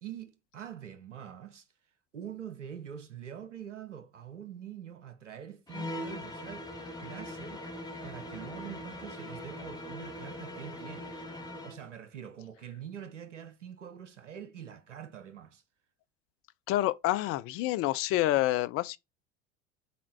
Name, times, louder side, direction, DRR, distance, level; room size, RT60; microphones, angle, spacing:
voice 1, 0.0-1.7 2.1-7.6 8.0-11.1 11.6-15.6, right 9 dB, 90° right, 0.8 m, -45 dB
sound 1, 5.7-11.8, left 1 dB, 10° left, 1.7 m, -41 dB
voice 2, 16.7-19.0, left 15 dB, 40° left, 0.4 m, -28 dB
4.2 x 4.1 x 2.6 m
hypercardioid pair, 70°, 35 cm